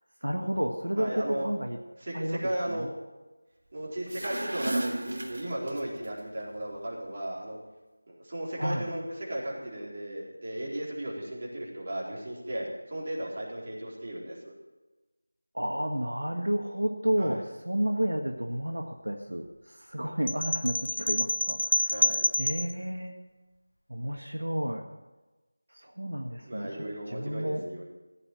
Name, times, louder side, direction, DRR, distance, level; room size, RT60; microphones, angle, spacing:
voice 1, 0.2-1.8 2.1-2.4 2.7-2.9 8.6-8.9 15.5-22.0 22.4-23.1 23.9-24.8 25.7-27.6, equal, 85° right, 3 dB, 1.6 m, -31 dB
voice 2, 1.0-1.5 2.0-2.9 3.7-7.6 8.1-14.5 17.2-17.4 21.9-22.2 26.4-27.8, right 1 dB, 35° right, -4 dB, 4.2 m, -35 dB
sound 1, 3.9-6.1, right 1 dB, 60° right, 1.6 m, -34 dB
sound 2, 20.3-22.7, left 1 dB, 90° left, 0.6 m, -27 dB
16.0 x 8.8 x 6.2 m, 1.1 s
figure-of-eight pair, 170°, 0 cm